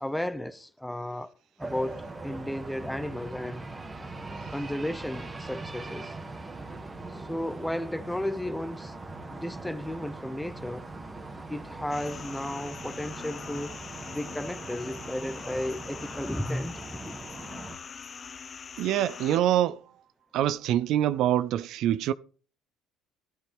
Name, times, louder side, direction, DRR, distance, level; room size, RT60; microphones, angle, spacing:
voice 1, 0.0-1.3 1.6-3.6 4.5-6.1 7.1-8.9 9.3-10.8 11.5-13.8 14.1-17.2, left 1 dB, 5° left, 0.8 m, -34 dB
sound 1, 1.6-17.8, right 2 dB, 20° right, 1.9 m, -41 dB
sound 2, 11.9-19.4, left 6 dB, 35° left, 0.9 m, -43 dB
voice 2, 18.8-19.8 20.3-22.1, right 12 dB, 65° right, 0.4 m, -25 dB
14.5 x 11.5 x 3.4 m
supercardioid pair, 90°, 0 cm